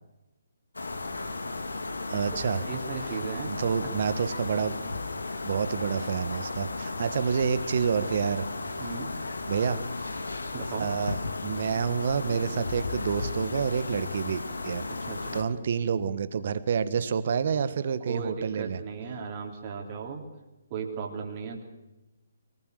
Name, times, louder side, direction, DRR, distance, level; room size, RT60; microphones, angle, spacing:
sound 1, 0.7-15.4, left 3 dB, 75° left, 2.2 m, -35 dB
voice 1, 2.1-2.7 3.5-4.8 5.4-8.5 9.5-10.1 10.8-14.8 15.3-18.8, right 6 dB, 50° right, 13 dB, 1.5 m, -28 dB
voice 2, 2.6-3.5 8.8-9.2 10.5-10.9 14.9-15.4 18.1-20.2 20.7-21.6, right 5 dB, 30° right, 1 dB, 3.5 m, -36 dB
23.5 x 19.5 x 6.7 m, 1.1 s
figure-of-eight pair, 140°, 0 cm